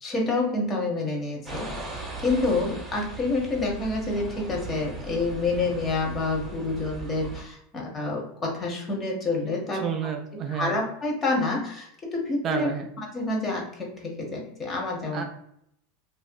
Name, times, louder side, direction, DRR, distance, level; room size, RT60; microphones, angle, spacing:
voice 1, 0.0-9.9 10.5-12.7 13.0-15.2, left 3 dB, 25° left, -1 dB, 0.8 m, -28 dB
sound 1, 1.5-7.4, right 3 dB, 10° right, 0.8 m, -38 dB
voice 2, 9.8-10.8 12.4-12.9 15.1-15.2, right 7 dB, 35° right, 4 dB, 0.3 m, -30 dB
2.5 x 2.5 x 2.2 m, 0.73 s
figure-of-eight pair, 85°, 0 cm